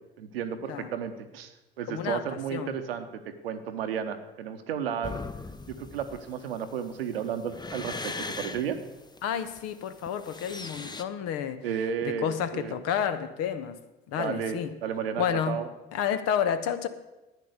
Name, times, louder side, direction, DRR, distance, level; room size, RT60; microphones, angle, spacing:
voice 1, 0.2-5.2 5.7-8.8 11.6-12.8 14.2-15.7, right 8 dB, 80° right, 8 dB, 1.0 m, -33 dB
voice 2, 1.9-2.2 2.5-2.8 9.2-11.6 12.0-13.8 14.1-14.7 15.2-15.6 15.9-16.9, left 8 dB, 60° left, 11 dB, 1.1 m, -30 dB
sound 1, 5.0-11.0, left 3 dB, 15° left, 0.7 m, -39 dB
11.0 x 9.2 x 6.7 m, 1.0 s
hypercardioid pair, 60°, 29 cm